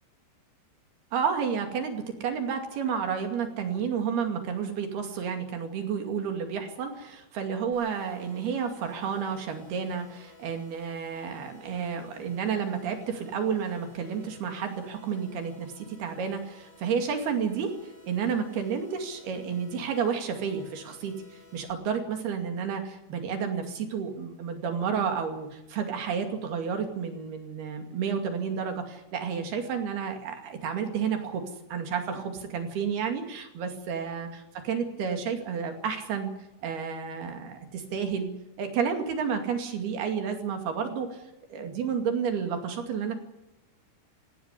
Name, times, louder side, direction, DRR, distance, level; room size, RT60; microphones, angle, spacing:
voice 1, 1.1-17.7 18.0-21.1 21.5-31.4 31.7-36.3 36.6-38.3 38.6-43.1, right 6 dB, 60° right, 5 dB, 4.0 m, -31 dB
sound 1, 7.7-21.7, left 3 dB, 20° left, 4.9 m, -55 dB
17.5 x 17.0 x 9.9 m, 0.93 s
omnidirectional pair, 5.6 m